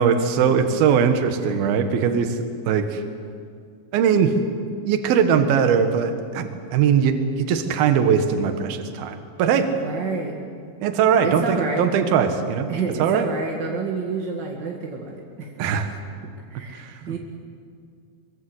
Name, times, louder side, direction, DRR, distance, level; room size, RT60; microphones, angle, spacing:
voice 1, 0.0-2.4 2.6-3.0 3.9-4.3 4.8-9.7 10.8-12.7 13.0-13.3 15.6-15.9 16.7-16.8, right 7 dB, 65° right, 7 dB, 3.1 m, -20 dB
voice 2, 9.5-10.4 11.2-11.9 12.7-15.5 16.5-17.2, right 4 dB, 40° right, 0 dB, 1.5 m, -29 dB
24.0 x 24.0 x 8.1 m, 2.2 s
omnidirectional pair, 5.1 m